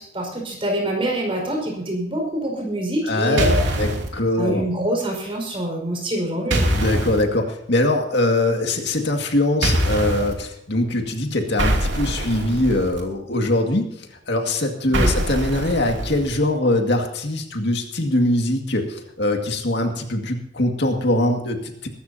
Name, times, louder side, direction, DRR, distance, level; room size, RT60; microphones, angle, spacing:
voice 1, 0.0-3.7 4.4-6.7 14.9-15.1, right 1 dB, 30° right, 1 dB, 5.1 m, -25 dB
voice 2, 3.1-4.7 6.7-21.9, left 1 dB, 65° left, 3 dB, 2.1 m, -22 dB
sound 1, 3.4-4.1 6.5-7.2 9.6-10.3 11.6-13.0 14.9-16.4, right 1 dB, 85° right, 2.7 m, -23 dB
22.0 x 13.0 x 2.8 m, 0.75 s
head